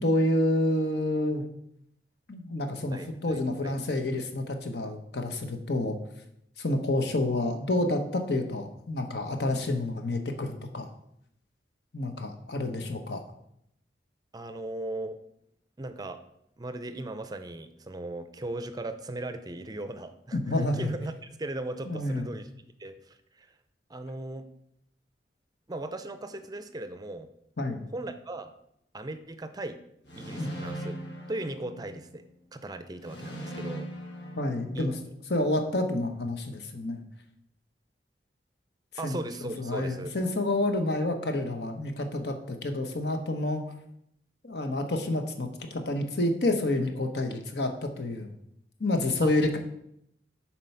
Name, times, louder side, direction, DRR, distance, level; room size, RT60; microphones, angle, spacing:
voice 1, 0.0-1.4 2.3-6.0 6.6-10.9 11.9-13.2 20.3-20.9 21.9-22.3 27.6-27.8 30.4-30.5 34.4-35.0 35.3-37.0 39.0-39.2 39.6-43.7 44.4-48.3 48.8-49.6, left 1 dB, 65° left, 5 dB, 1.0 m, -29 dB
voice 2, 2.9-3.8 14.3-15.2 15.8-16.2 16.6-22.5 22.8-23.5 23.9-24.4 25.7-27.3 27.9-28.5 28.9-29.8 30.2-31.0 31.3-32.2 32.5-33.9 34.7-34.9 39.0-40.1 49.2-49.3, right 2 dB, 20° right, 9 dB, 0.5 m, -38 dB
sound 1, 30.1-32.2 33.0-35.2, right 1 dB, 80° left, 1.6 m, -40 dB
7.4 x 4.5 x 5.6 m, 0.74 s
head